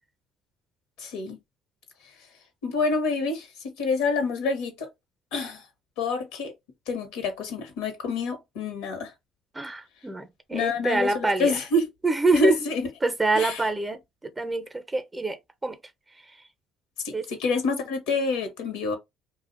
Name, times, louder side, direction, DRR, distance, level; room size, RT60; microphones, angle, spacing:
voice 1, 1.0-1.4 2.6-4.9 5.3-5.6 6.0-6.5 6.9-9.1 10.5-11.9 12.3-12.9 13.3-13.7 17.0-19.0, left 3 dB, 85° left, 0.8 m, -27 dB
voice 2, 9.5-11.6 12.0-12.6 13.0-15.8 17.1-17.3, right 2 dB, 20° right, 0.5 m, -26 dB
2.4 x 2.1 x 2.4 m
supercardioid pair, 75°, 0 cm